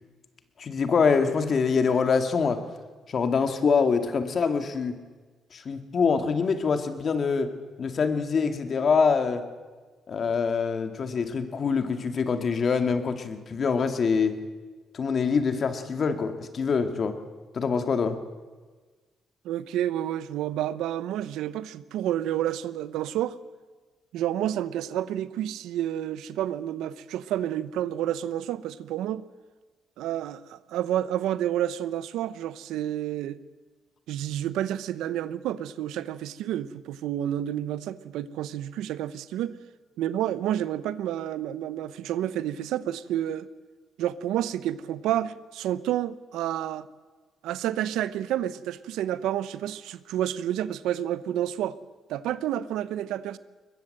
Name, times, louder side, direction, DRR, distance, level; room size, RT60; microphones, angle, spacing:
voice 1, 0.6-2.6 3.1-4.9 5.5-7.5 7.8-9.4 10.1-14.4 14.9-17.2 17.5-18.2, left 5 dB, 50° left, 2.2 m, -25 dB
voice 2, 19.4-23.4 24.1-29.3 30.0-33.4 34.1-39.6 40.0-43.5 44.0-46.9 47.4-51.8 52.1-53.4, right 11 dB, 90° right, 0.8 m, -29 dB
22.0 x 21.0 x 7.8 m
cardioid pair, 90°, 0 cm